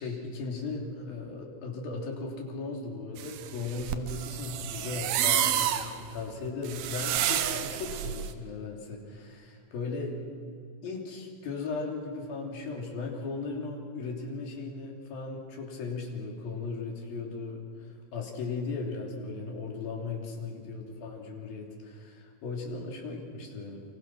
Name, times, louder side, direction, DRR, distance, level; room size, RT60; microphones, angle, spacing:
voice 1, 0.0-10.2 10.8-23.8, left 3 dB, 70° left, 0 dB, 5.0 m, -37 dB
sound 1, 3.2-8.3, right 11 dB, 75° right, 2.8 m, -30 dB
28.0 x 25.5 x 6.1 m, 2.2 s
omnidirectional pair, 4.4 m